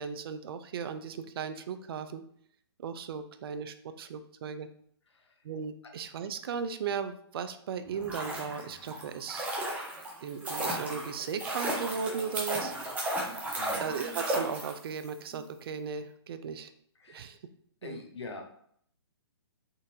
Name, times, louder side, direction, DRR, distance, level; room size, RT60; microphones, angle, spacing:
voice 1, 0.0-2.2 2.8-4.7 5.4-9.5 10.2-12.9 13.8-16.7 17.1-17.4 17.8-18.0, right 6 dB, 60° right, 10 dB, 0.4 m, -36 dB
sound 1, 7.9-15.1 15.3-15.4, right 1 dB, 10° right, 0.6 m, -34 dB
voice 2, 17.0-17.4 17.8-18.4, left 3 dB, 85° left, 3 dB, 0.8 m, -44 dB
3.8 x 2.5 x 2.7 m, 0.64 s
hypercardioid pair, 140°, 14 cm